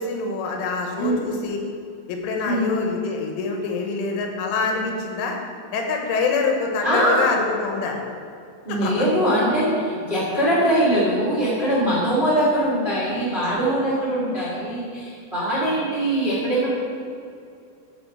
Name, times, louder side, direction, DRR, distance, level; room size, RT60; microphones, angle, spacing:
voice 1, 0.0-1.6 2.1-5.4 5.7-8.0 8.7-9.1 13.4-13.6, left 4 dB, 90° left, 1 dB, 3.8 m, -25 dB
voice 2, 6.8-7.3 8.6-16.7, right 1 dB, 15° right, -9 dB, 1.6 m, -22 dB
12.0 x 5.0 x 7.2 m, 2.5 s
omnidirectional pair, 5.4 m